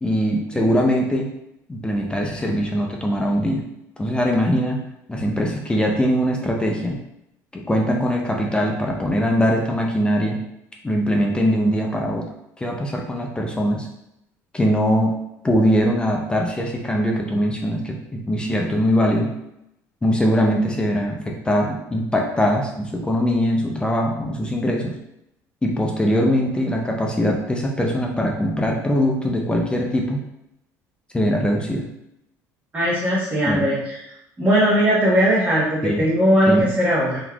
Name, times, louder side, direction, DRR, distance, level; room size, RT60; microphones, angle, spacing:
voice 1, 0.0-1.3 1.7-3.6 4.0-4.8 5.1-7.0 7.5-10.4 10.8-12.3 12.6-13.9 14.5-15.1 15.4-19.3 20.0-24.9 25.6-30.2 31.1-31.8 33.5-33.6 35.8-36.1 36.5-36.7, equal, 10° left, 0 dB, 0.5 m, -21 dB
voice 2, 32.7-34.0 34.4-37.2, equal, 20° right, -10 dB, 1.2 m, -19 dB
3.6 x 2.9 x 2.3 m, 0.83 s
supercardioid pair, 100°, 7 cm